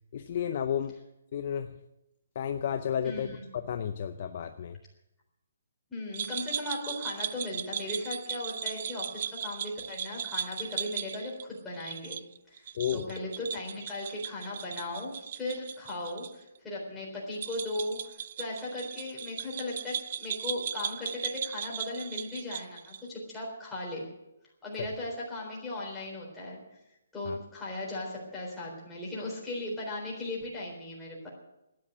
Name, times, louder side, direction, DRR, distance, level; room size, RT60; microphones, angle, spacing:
voice 1, 0.1-1.0 1.3-1.8 2.3-4.8 12.8-13.1 24.8-24.9 27.3-27.4, left 9 dB, 40° left, 8 dB, 0.6 m, -32 dB
voice 2, 3.0-3.5 5.9-12.2 12.5-24.1 24.6-26.6 27.1-31.3, left 1 dB, 5° left, -5 dB, 3.9 m, -37 dB
sound 1, 6.1-16.3 16.6-16.7 17.3-23.1, right 8 dB, 40° right, 0.4 m, -37 dB
12.5 x 9.9 x 9.2 m, 0.92 s
hypercardioid pair, 170°, 0 cm